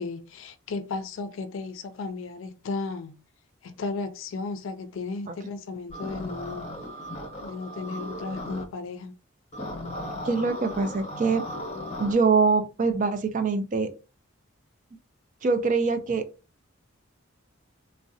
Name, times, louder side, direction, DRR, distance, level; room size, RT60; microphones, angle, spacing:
voice 1, 0.0-3.2 3.6-6.7 7.4-9.2, left 3 dB, 70° left, 0.4 m, -34 dB
sound 1, 5.9-8.6 9.5-12.1, left 1 dB, 35° left, 0.8 m, -36 dB
voice 2, 10.2-11.4 12.0-13.9 15.4-16.3, right 4 dB, 40° right, 0.4 m, -24 dB
3.6 x 2.1 x 2.6 m
head